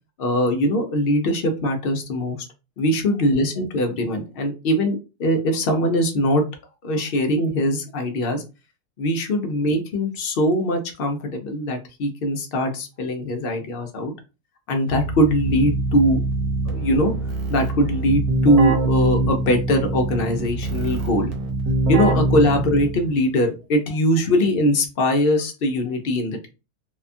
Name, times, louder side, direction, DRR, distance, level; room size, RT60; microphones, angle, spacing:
voice 1, 0.2-2.4 2.8-6.4 6.8-8.4 9.0-14.1 14.7-16.2 16.7-17.1 17.5-21.3 21.9-26.5, equal, 60° left, 4 dB, 0.6 m, -21 dB
Keyboard (musical), 14.9-23.2, right 2 dB, 85° right, 1.2 m, -24 dB
2.8 x 2.2 x 2.5 m, 0.29 s
omnidirectional pair, 1.6 m